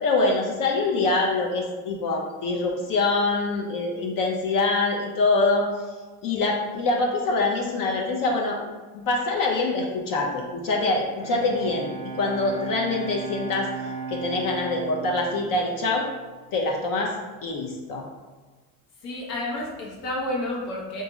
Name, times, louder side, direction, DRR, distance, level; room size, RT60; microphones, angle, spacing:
voice 1, 0.0-5.7 6.2-8.6 8.9-11.9 12.1-13.7 14.1-16.1 16.5-17.1 17.4-18.1, left 3 dB, 50° left, 0 dB, 0.6 m, -24 dB
Bowed string instrument, 10.9-16.7, right 5 dB, 20° left, 0.7 m, -36 dB
voice 2, 19.0-21.0, left 1 dB, 75° left, -3 dB, 1.2 m, -30 dB
2.8 x 2.7 x 3.5 m, 1.3 s
supercardioid pair, 80°, 43 cm